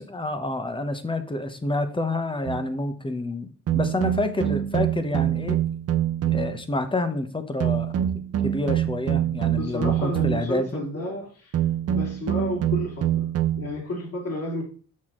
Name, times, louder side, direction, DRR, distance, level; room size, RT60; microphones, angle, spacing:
voice 1, 0.0-5.6 6.3-7.9 8.4-10.8, left 2 dB, 15° left, 1.0 m, -28 dB
sound 1, 2.5-2.7 3.7-6.7 7.6-10.6 11.5-13.7, right 11 dB, 50° right, 0.8 m, -25 dB
voice 2, 9.5-11.5 11.9-13.3 13.6-14.6, left 1 dB, 55° left, 2.9 m, -31 dB
6.3 x 5.8 x 3.7 m
cardioid pair, 90°, 30 cm